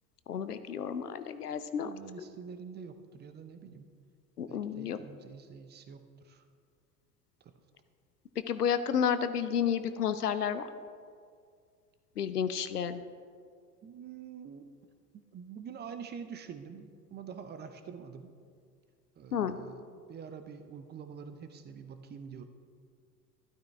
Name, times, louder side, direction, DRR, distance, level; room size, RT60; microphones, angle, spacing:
voice 1, 0.3-1.9 4.4-5.0 8.5-10.6 12.2-13.0 19.3-19.6, left 8 dB, 80° left, 12 dB, 0.7 m, -31 dB
voice 2, 1.8-3.9 4.5-6.4 7.4-7.5 13.8-14.7 15.1-18.3 19.2-19.8 20.1-22.4, right 6 dB, 20° right, 9 dB, 0.7 m, -46 dB
12.5 x 12.0 x 3.4 m, 2.1 s
figure-of-eight pair, 75°, 46 cm